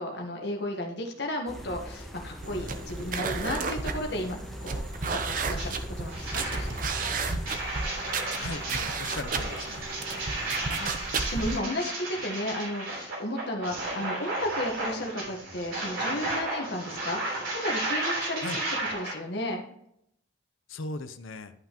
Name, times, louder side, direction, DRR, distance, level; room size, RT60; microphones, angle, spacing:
voice 1, 0.0-4.8 5.1-6.9 10.8-18.4 18.9-19.6, left 1 dB, 55° left, 2 dB, 1.2 m, -34 dB
sound 1, 1.5-7.5, equal, ahead, 0.9 m, -40 dB
sound 2, 2.4-11.6, right 4 dB, 40° right, 0.6 m, -33 dB
sound 3, 5.6-5.7 6.1-19.1, right 2 dB, 85° right, 3.4 m, -33 dB
voice 2, 8.3-9.9 18.4-18.6 20.7-21.5, left 3 dB, 80° left, 11 dB, 0.6 m, -38 dB
11.0 x 5.7 x 2.9 m, 0.74 s
head